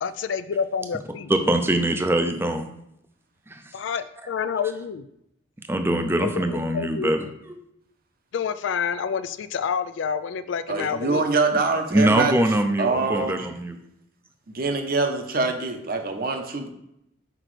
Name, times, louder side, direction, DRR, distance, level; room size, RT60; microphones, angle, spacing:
voice 1, 0.0-1.3 3.7-5.1 6.2-7.1 8.3-11.2, left 6 dB, 65° left, 13 dB, 0.3 m, -28 dB
voice 2, 1.3-2.7 3.5-3.6 5.7-7.6 11.9-13.8, right 1 dB, 10° right, 7 dB, 0.5 m, -23 dB
voice 3, 10.7-12.3 12.8-13.5 14.5-16.7, right 3 dB, 50° right, 5 dB, 0.8 m, -24 dB
6.0 x 4.9 x 3.2 m, 0.78 s
head